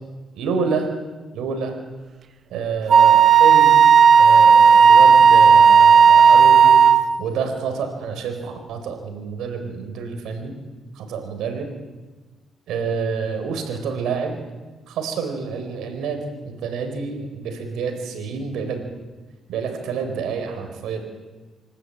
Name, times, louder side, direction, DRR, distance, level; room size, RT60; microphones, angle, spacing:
voice 1, 0.3-0.9 1.3-1.8 2.5-3.8 4.2-6.8 7.2-10.5 10.9-11.7 12.7-14.4 14.9-18.8 19.5-21.0, right 5 dB, 85° right, 5 dB, 4.4 m, -28 dB
Wind instrument woodwind instrument, 2.9-7.1, right 6 dB, 50° right, 1.0 m, -11 dB
26.5 x 12.5 x 8.9 m, 1.3 s
cardioid pair, 90°, 0 cm